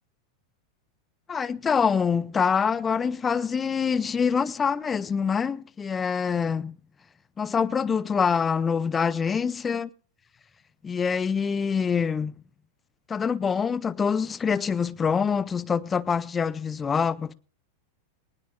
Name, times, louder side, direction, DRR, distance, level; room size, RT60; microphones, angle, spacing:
voice 1, 1.3-6.8 7.4-9.9 10.8-12.4 13.1-17.3, left 6 dB, 20° left, 0.6 m, -25 dB
20.0 x 19.5 x 2.3 m
figure-of-eight pair, 90°, 0 cm